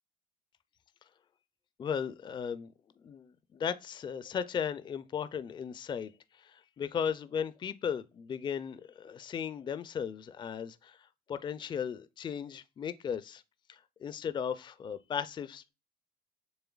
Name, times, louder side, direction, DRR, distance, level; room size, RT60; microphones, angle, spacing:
voice 1, 1.8-2.7 3.0-6.1 6.4-11.0 11.3-13.4 13.7-15.7, left 7 dB, 30° left, 0.4 m, -36 dB
7.0 x 3.3 x 2.2 m
cardioid pair, 110°, 17 cm